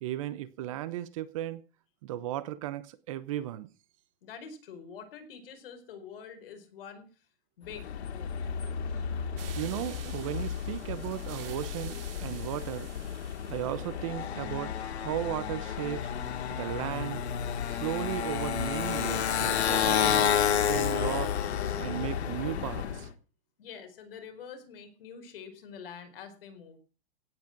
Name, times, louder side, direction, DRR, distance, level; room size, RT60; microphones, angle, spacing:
voice 1, 0.0-1.6 2.0-3.7 9.6-12.9 13.5-16.1 16.5-17.2 17.7-20.3 20.6-21.4 21.8-23.1, right 13 dB, 30° right, 0.9 m, -35 dB
voice 2, 4.2-7.1 7.6-7.9 8.1-8.4 23.6-26.8, left 6 dB, 60° left, 4.8 m, -46 dB
Motorcycle, 7.7-23.1, left 8 dB, 85° left, 2.6 m, -31 dB
sound 1, 9.4-14.4, right 10 dB, 60° right, 3.1 m, -49 dB
17.0 x 9.0 x 6.0 m
supercardioid pair, 175°, 32 cm